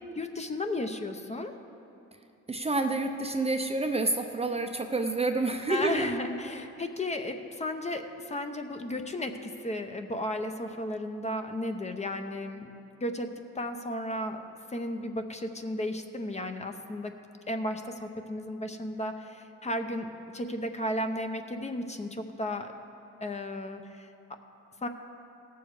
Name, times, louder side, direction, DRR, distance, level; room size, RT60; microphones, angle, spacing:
voice 1, 0.2-1.5 5.7-12.7 13.0-13.3 13.6-14.4 14.7-17.1 17.5-22.7 23.2-24.1 24.8-24.9, left 1 dB, 20° left, 6 dB, 0.7 m, -34 dB
voice 2, 2.5-6.1, right 2 dB, 20° right, 5 dB, 0.6 m, -28 dB
17.0 x 7.0 x 4.8 m, 2.7 s
cardioid pair, 90°, 30 cm